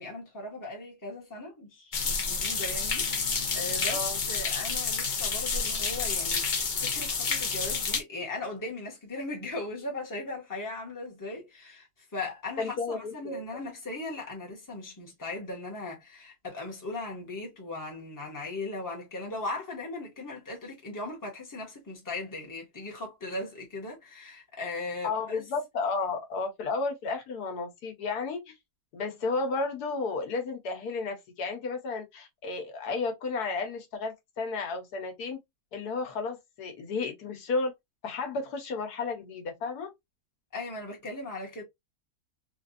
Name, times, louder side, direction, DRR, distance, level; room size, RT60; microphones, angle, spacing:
voice 1, 0.0-11.9 12.1-25.4 40.5-41.6, left 2 dB, 15° left, 1.1 m, -38 dB
sound 1, 1.9-8.0, left 5 dB, 45° left, 0.6 m, -29 dB
voice 2, 3.9-4.2 12.6-13.4 25.0-28.5 28.9-35.4 35.7-37.7 38.0-39.9, left 4 dB, 90° left, 1.5 m, -32 dB
3.7 x 2.5 x 2.5 m
omnidirectional pair, 1.6 m